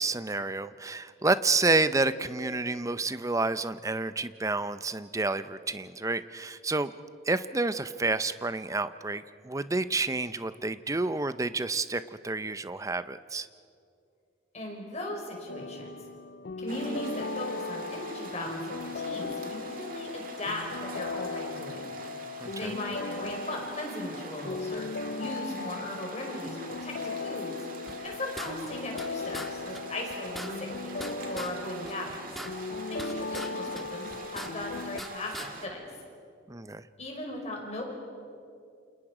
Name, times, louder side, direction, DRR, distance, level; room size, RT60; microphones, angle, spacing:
voice 1, 0.0-6.9 7.3-13.5 22.4-22.7 36.5-36.8, right 3 dB, 15° right, 13 dB, 0.6 m, -29 dB
voice 2, 14.5-15.9 16.6-20.6 20.9-21.9 22.6-24.9 25.1-27.6 28.0-32.3 32.9-35.8 37.0-37.8, left 1 dB, 35° left, 0 dB, 5.1 m, -38 dB
sound 1, 15.5-35.0, left 4 dB, 60° left, 0.5 m, -38 dB
sound 2, 16.7-35.7, right 3 dB, 45° right, 2.1 m, -45 dB
sound 3, 27.9-29.1 29.3-29.5 29.7-29.8 30.1-31.5 31.8-33.5 33.7-35.1 35.3-35.5, equal, ahead, 1.5 m, -40 dB
28.5 x 28.5 x 5.0 m, 2.5 s
head